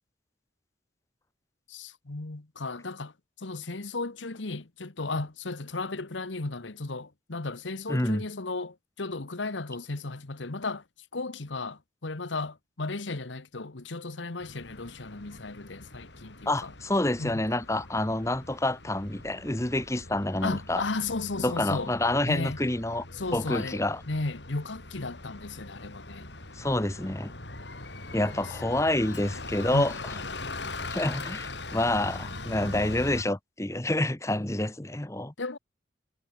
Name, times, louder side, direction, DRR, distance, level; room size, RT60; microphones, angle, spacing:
voice 1, 1.7-3.1 3.4-10.8 11.1-16.7 17.2-17.4 20.4-21.9 22.3-22.6 23.1-23.8 24.1-26.3 29.7-30.2 35.4-35.6, left 3 dB, 90° left, 1.3 m, -34 dB
voice 2, 7.9-8.2 16.5-20.8 21.4-23.0 23.3-24.0 26.6-27.3 28.1-29.9 30.9-35.3, left 1 dB, 15° left, 1.1 m, -28 dB
Bus, 14.4-33.2, left 2 dB, 75° left, 5.4 m, -41 dB
head